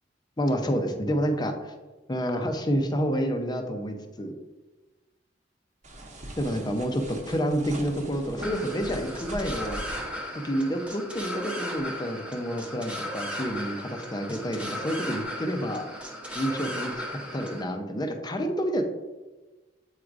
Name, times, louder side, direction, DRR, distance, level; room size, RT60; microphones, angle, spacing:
voice 1, 0.4-1.7 2.1-4.3 6.4-9.8 10.3-15.9 16.3-17.1 17.3-18.8, equal, 25° left, 5 dB, 0.6 m, -29 dB
sound 1, 5.8-10.2, right 1 dB, 40° right, 1.0 m, -41 dB
sound 2, 8.4-17.6, equal, 5° right, 0.9 m, -36 dB
8.2 x 4.6 x 2.5 m, 1.2 s
head